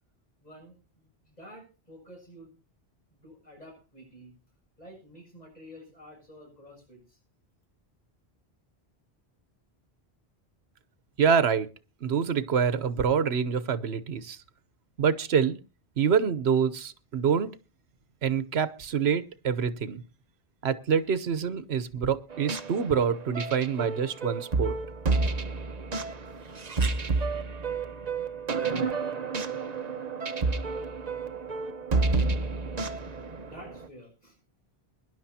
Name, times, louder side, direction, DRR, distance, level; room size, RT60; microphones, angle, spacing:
voice 1, 0.4-2.5 3.1-4.4 4.8-7.2 33.5-34.4, equal, 40° left, 1 dB, 7.2 m, -50 dB
voice 2, 11.2-11.7 12.0-14.4 15.0-15.6 16.0-17.5 18.2-20.0 20.6-24.7, right 7 dB, 75° right, 15 dB, 1.2 m, -26 dB
sound 1, 22.3-33.9, right 3 dB, 40° right, 1.0 m, -30 dB
23.0 x 11.0 x 2.8 m, 0.32 s
omnidirectional pair, 1.1 m